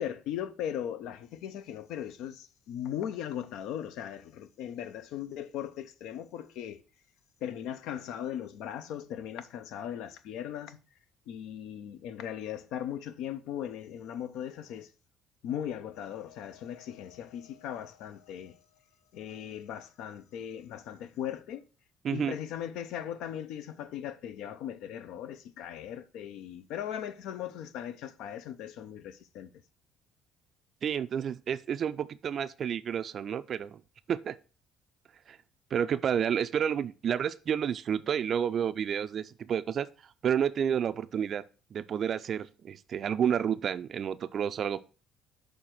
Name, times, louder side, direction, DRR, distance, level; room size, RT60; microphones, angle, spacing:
voice 1, 0.0-6.8 7.4-10.8 11.3-14.9 15.4-18.6 19.1-21.6 22.1-29.5, left 10 dB, 80° left, 0.6 m, -38 dB
voice 2, 22.0-22.3 30.8-33.8 34.1-34.4 35.3-35.4 35.7-39.9 40.2-41.4 41.7-44.8, right 8 dB, 50° right, 0.3 m, -30 dB
6.4 x 3.4 x 5.9 m
cardioid pair, 90°, 0 cm